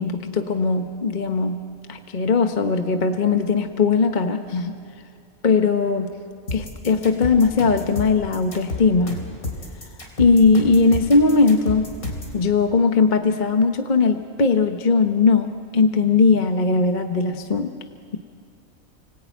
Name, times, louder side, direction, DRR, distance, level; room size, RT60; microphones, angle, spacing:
voice 1, 0.0-4.7 5.4-6.1 6.5-9.2 10.2-11.9 12.3-17.7, left 4 dB, 35° left, 6 dB, 1.0 m, -19 dB
sound 1, 6.5-12.4, left 2 dB, 70° left, 4.2 m, -31 dB
29.5 x 19.0 x 9.2 m, 2.3 s
omnidirectional pair, 1.5 m